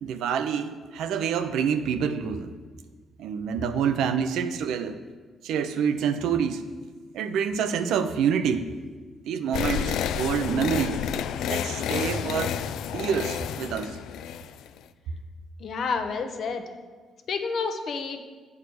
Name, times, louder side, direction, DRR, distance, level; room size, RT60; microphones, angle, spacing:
voice 1, 0.0-2.5 3.2-5.0 5.4-6.7 7.1-8.7 9.3-11.1 11.5-12.6 12.9-14.0, right 7 dB, 85° right, 10 dB, 0.5 m, -27 dB
sound 1, 9.5-14.8, left 9 dB, 85° left, 0.3 m, -30 dB
voice 2, 15.6-16.6 17.3-18.2, left 5 dB, 60° left, 6 dB, 0.8 m, -29 dB
8.5 x 4.8 x 6.3 m, 1.4 s
cardioid pair, 90°, 0 cm